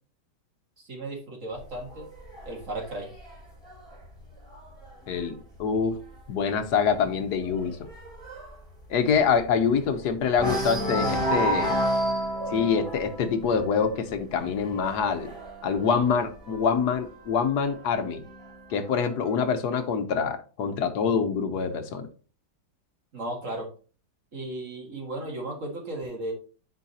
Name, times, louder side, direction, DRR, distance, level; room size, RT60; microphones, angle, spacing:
voice 1, 0.9-2.1 2.5-3.1 23.1-23.7 24.3-26.3, right 1 dB, 45° right, 0 dB, 2.1 m, -35 dB
sound 1, 1.6-5.2 5.6-5.9 6.2-6.3 6.7-9.9 10.3-16.9 17.7-18.7, equal, ahead, 3.5 m, -31 dB
voice 2, 5.1-6.0 6.3-7.9 8.9-11.7 12.5-15.3 15.6-18.2 18.7-22.1, left 6 dB, 70° left, 8 dB, 1.3 m, -25 dB
10.0 x 4.6 x 2.8 m, 0.37 s
omnidirectional pair, 1.9 m